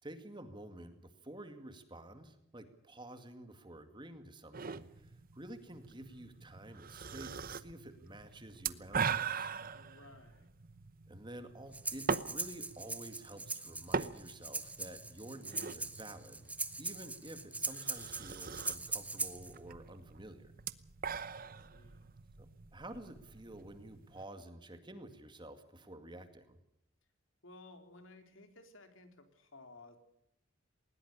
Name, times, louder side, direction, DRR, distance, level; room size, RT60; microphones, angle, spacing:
voice 1, 0.0-9.5 11.1-16.5 16.8-20.5 22.4-22.5 22.7-26.6, right 1 dB, 25° right, 8 dB, 2.2 m, -50 dB
sound 1, 4.5-24.2, right 5 dB, 45° right, 0.9 m, -42 dB
voice 2, 9.7-10.5 21.4-22.0 27.4-30.0, left 2 dB, 70° left, 6 dB, 3.8 m, -57 dB
Breathing, 11.7-19.5, right 3 dB, 5° right, 1.2 m, -41 dB
20.0 x 20.0 x 6.8 m, 0.78 s
head